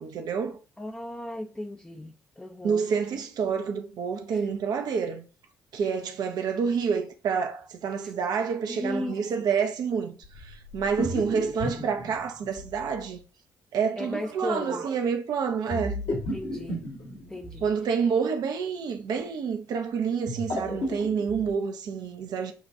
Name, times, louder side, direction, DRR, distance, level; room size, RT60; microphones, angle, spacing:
voice 1, 0.0-0.6 2.6-5.3 5.7-13.2 13.7-16.0 17.6-22.5, right 6 dB, 55° right, 0.6 m, -28 dB
voice 2, 0.8-2.9 4.3-4.4 8.7-9.5 14.0-14.8 15.7-16.0 16.3-16.8 17.3-17.7, left 1 dB, 10° left, 0.6 m, -36 dB
sound 1, 10.2-13.1 15.7-17.7 20.1-21.5, left 1 dB, 60° left, 1.4 m, -34 dB
6.3 x 2.4 x 2.6 m
figure-of-eight pair, 45°, 8 cm